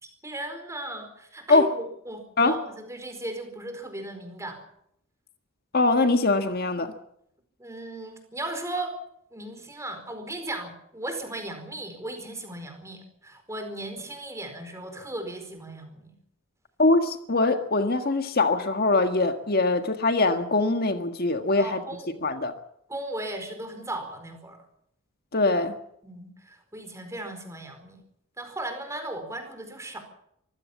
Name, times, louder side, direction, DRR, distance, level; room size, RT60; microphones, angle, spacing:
voice 1, 0.0-4.6 7.6-8.9 9.3-16.1 21.6-22.1 22.9-24.6 26.0-28.0 28.4-30.0, right 1 dB, 15° right, 4.6 m, -36 dB
voice 2, 5.7-6.9 16.8-21.8 22.2-22.5 25.3-25.7, left 3 dB, 45° left, 1.6 m, -22 dB
24.5 x 16.0 x 7.3 m
head